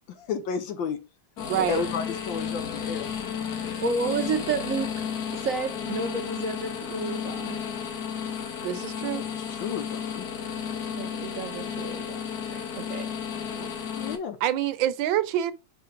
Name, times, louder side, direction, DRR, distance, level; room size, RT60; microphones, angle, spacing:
voice 1, 0.1-1.0 1.7-3.1 9.0-10.3 14.0-14.4, left 6 dB, 80° left, 1.7 m, -32 dB
sound 1, 1.4-14.2, left 7 dB, 60° left, 1.4 m, -33 dB
voice 2, 1.5-1.8 8.6-9.2 13.5-13.7 14.4-15.5, right 11 dB, 85° right, 1.4 m, -26 dB
voice 3, 3.4-5.0 5.3-7.6 9.6-9.8 10.9-13.1, right 4 dB, 65° right, 0.9 m, -31 dB
5.0 x 4.8 x 5.0 m
omnidirectional pair, 2.1 m